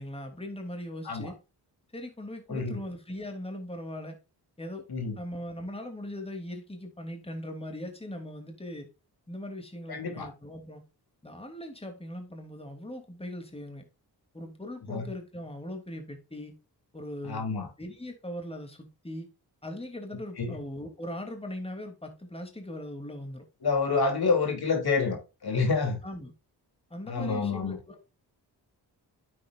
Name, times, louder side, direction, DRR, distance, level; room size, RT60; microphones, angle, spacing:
voice 1, 0.0-1.4 1.9-4.2 4.6-4.9 5.1-8.9 9.3-10.8 11.2-13.9 14.3-16.6 16.9-17.5 17.8-19.3 19.6-23.5 26.0-26.3 26.9-28.0, left 1 dB, 15° left, 2.9 m, -40 dB
voice 2, 9.9-10.3 14.9-15.1 17.2-17.7 20.4-20.6 23.6-25.2 25.4-26.0 27.1-27.8, left 4 dB, 60° left, 3.2 m, -28 dB
9.5 x 8.2 x 2.5 m
cardioid pair, 50°, 42 cm